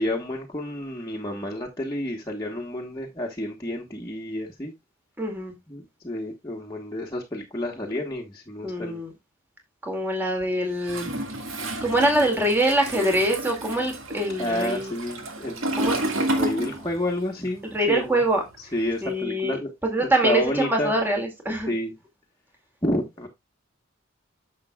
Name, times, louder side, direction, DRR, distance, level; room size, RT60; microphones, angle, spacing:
voice 1, 0.0-4.7 5.7-9.0 14.4-18.2 18.6-19.7 20.0-20.9 21.7-21.9 22.8-23.3, left 1 dB, 20° left, 1.3 m, -30 dB
voice 2, 5.2-5.5 8.6-9.1 9.8-11.1 11.8-14.9 15.7-16.0 17.7-18.4 19.0-19.6 19.8-21.7, right 1 dB, 10° right, 2.3 m, -24 dB
Toilet flush, 10.8-17.3 17.5-19.1, right 1 dB, 80° right, 1.7 m, -30 dB
10.5 x 6.8 x 2.3 m
head